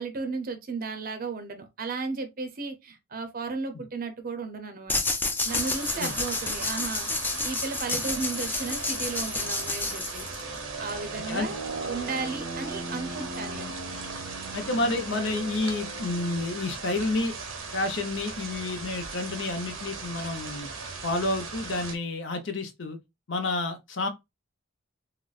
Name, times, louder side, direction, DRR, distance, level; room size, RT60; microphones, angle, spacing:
voice 1, 0.0-5.0 5.4-10.3 10.8-11.6 11.9-13.7, right 4 dB, 45° right, 0.6 m, -34 dB
sound 1, 4.9-10.6, left 3 dB, 10° left, 0.4 m, -30 dB
sound 2, 5.5-21.9, right 3 dB, 85° right, 0.7 m, -37 dB
voice 2, 14.5-17.3 17.7-20.7 21.0-23.0 23.3-24.1, left 2 dB, 65° left, 0.7 m, -29 dB
3.9 x 2.0 x 2.3 m
head